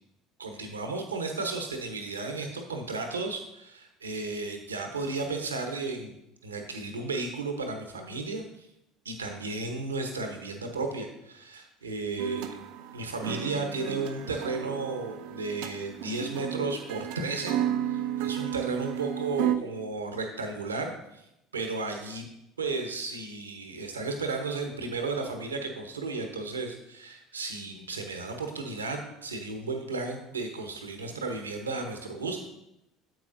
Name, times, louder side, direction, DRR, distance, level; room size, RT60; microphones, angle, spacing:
voice 1, 0.4-6.2 6.4-8.7 9.0-12.6 12.9-21.2 21.5-22.3 22.6-32.4, right 3 dB, 85° right, 5 dB, 0.9 m, -34 dB
sound 1, 12.2-19.6, right 11 dB, 65° right, 0.5 m, -33 dB
9.0 x 8.0 x 2.6 m, 0.84 s
figure-of-eight pair, 65°, 0 cm